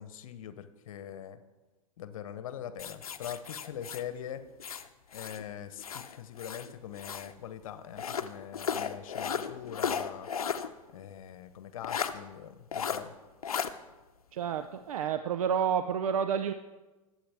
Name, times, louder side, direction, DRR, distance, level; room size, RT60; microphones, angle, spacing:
voice 1, 0.0-1.4 2.0-4.4 5.1-10.3 10.9-13.1, left 9 dB, 65° left, 12 dB, 1.0 m, -42 dB
sound 1, 2.8-5.4 5.8-7.3 7.9-10.7 11.0-11.1 11.8-12.1 12.7-13.0 13.4-13.7, left 7 dB, 85° left, 0.7 m, -35 dB
voice 2, 14.3-16.5, right 7 dB, 75° right, 10 dB, 0.6 m, -29 dB
20.5 x 8.0 x 3.5 m, 1.2 s
hypercardioid pair, 95°, 18 cm